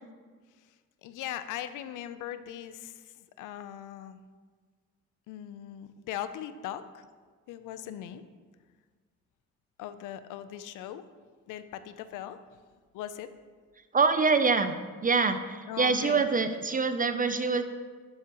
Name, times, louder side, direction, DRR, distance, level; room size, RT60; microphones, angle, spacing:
voice 1, 1.0-3.0 3.4-4.2 5.3-7.1 7.5-8.2 9.8-11.1 11.5-12.4 12.9-13.3 15.7-16.3, left 11 dB, 85° left, 12 dB, 0.6 m, -39 dB
voice 2, 13.9-17.6, right 4 dB, 30° right, 10 dB, 0.5 m, -25 dB
12.0 x 7.3 x 3.0 m, 1.5 s
cardioid pair, 90°, 30 cm